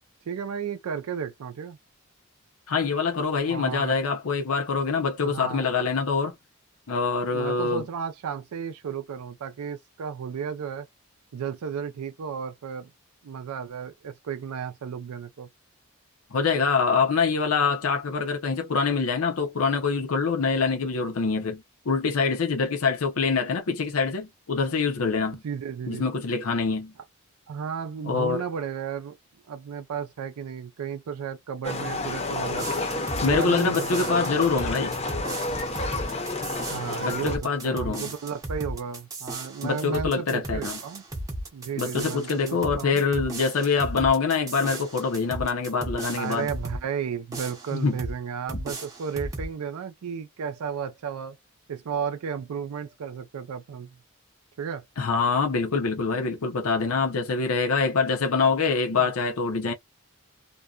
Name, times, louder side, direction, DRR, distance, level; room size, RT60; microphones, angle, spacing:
voice 1, 0.3-1.8 3.5-4.0 5.2-5.7 7.3-10.9 11.3-12.9 13.2-15.5 25.4-26.1 27.5-29.2 29.5-32.7 33.3-34.3 36.6-41.0 41.5-43.0 46.2-51.4 51.7-54.0 54.6-54.8 58.9-59.1, right 7 dB, 85° right, 0.4 m, -33 dB
voice 2, 2.7-6.3 6.9-7.8 16.3-25.4 25.9-26.9 28.1-28.4 33.2-34.9 37.0-38.1 39.6-40.8 41.8-46.5 47.7-48.0 55.0-59.7, left 4 dB, 75° left, 0.6 m, -25 dB
Livestock farm animals working animals, 31.6-37.4, left 2 dB, 30° left, 0.6 m, -30 dB
sound 1, 32.6-46.8 47.3-48.2 48.5-49.5, right 1 dB, 15° right, 0.6 m, -36 dB
2.6 x 2.1 x 2.3 m
head